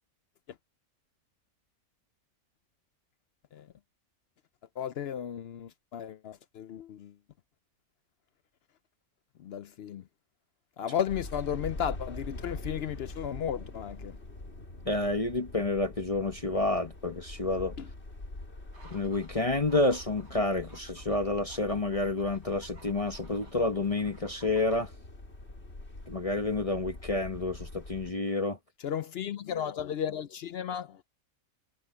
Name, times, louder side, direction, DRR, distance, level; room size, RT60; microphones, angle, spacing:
voice 1, 4.8-7.1 9.4-10.0 10.8-14.2 17.8-17.9 28.8-31.0, left 9 dB, 65° left, 0.6 m, -34 dB
sound 1, 11.1-28.1, left 2 dB, 45° left, 3.7 m, -44 dB
voice 2, 14.8-17.7 18.8-24.9 26.1-28.6, left 2 dB, 30° left, 0.9 m, -29 dB
sound 2, 18.7-24.9, right 3 dB, 70° right, 5.7 m, -57 dB
omnidirectional pair, 1.6 m